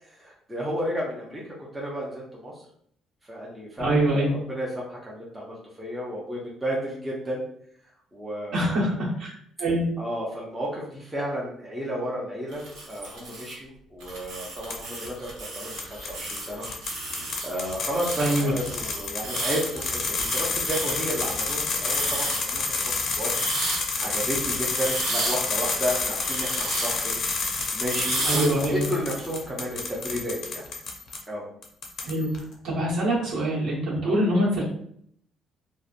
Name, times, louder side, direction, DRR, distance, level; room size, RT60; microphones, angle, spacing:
voice 1, 0.0-2.6 3.3-7.4 8.1-9.0 10.0-16.7 17.4-23.3 24.0-27.2 27.7-30.6 31.3-31.5 34.0-34.2, equal, 10° right, -5 dB, 0.5 m, -32 dB
voice 2, 3.8-4.3 8.5-8.9 9.2-9.3 9.6-9.9 18.2-18.5 28.2-28.9 32.1-32.3 32.6-34.6, right 1 dB, 65° right, -7 dB, 1.2 m, -24 dB
sound 1, 12.5-13.5 14.0-28.8, right 2 dB, 85° right, 1.0 m, -33 dB
sound 2, 14.7-15.1 15.8-31.2 31.6-32.4, left 4 dB, 45° left, 0.5 m, -30 dB
2.8 x 2.1 x 2.4 m, 0.67 s
cardioid pair, 155°, 0 cm